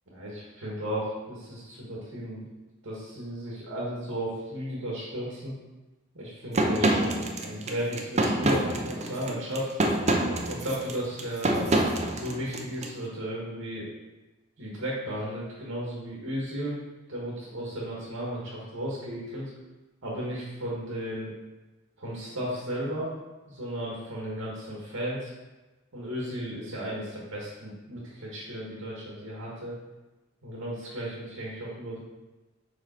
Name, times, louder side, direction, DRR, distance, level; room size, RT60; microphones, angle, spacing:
voice 1, 0.1-2.4 2.8-5.5 6.1-9.8 10.5-11.7 12.1-13.9 14.6-16.8 17.1-19.5 20.0-21.3 22.0-23.1 23.5-25.3 25.9-29.8 30.4-32.0, equal, 80° right, -5 dB, 1.6 m, -34 dB
sound 1, 6.5-12.9, right 1 dB, 30° right, 0.6 m, -26 dB
5.5 x 5.1 x 4.4 m, 1.1 s
head